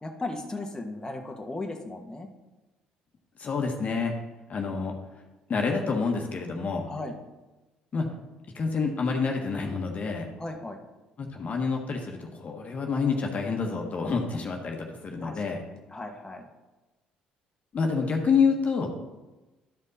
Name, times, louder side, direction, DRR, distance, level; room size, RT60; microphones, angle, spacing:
voice 1, 0.0-2.3 6.8-7.2 10.4-10.8 15.2-15.6 15.9-16.5, left 2 dB, 20° left, 1 dB, 1.4 m, -36 dB
voice 2, 3.4-4.1 4.5-4.9 5.5-6.9 7.9-8.1 8.5-10.3 11.2-15.6 17.7-18.9, left 5 dB, 45° left, 2 dB, 1.4 m, -28 dB
12.0 x 5.3 x 4.1 m, 1.1 s
hypercardioid pair, 60°, 3 cm